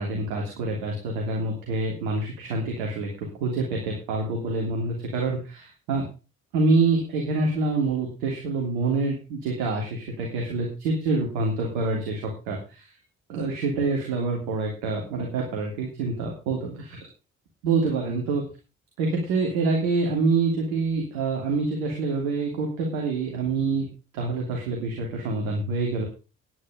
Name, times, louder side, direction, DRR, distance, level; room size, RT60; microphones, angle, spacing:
voice 1, 0.0-6.0 6.5-12.9 13.3-17.1 17.6-18.4 19.0-23.9 24.1-26.0, right 3 dB, 75° right, 0 dB, 3.0 m, -26 dB
10.0 x 9.9 x 5.1 m, 0.32 s
figure-of-eight pair, 45°, 40 cm